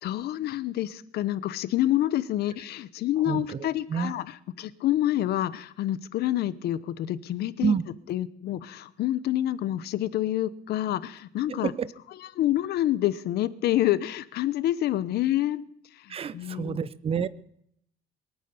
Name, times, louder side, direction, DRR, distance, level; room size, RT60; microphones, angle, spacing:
voice 1, 0.0-7.7 8.1-11.7 12.2-15.6 16.0-16.8, left 13 dB, 70° left, 16 dB, 0.9 m, -27 dB
voice 2, 11.5-11.9 16.1-17.3, right 7 dB, 35° right, 18 dB, 0.7 m, -28 dB
22.0 x 9.3 x 6.9 m, 0.69 s
cardioid pair, 110°, 17 cm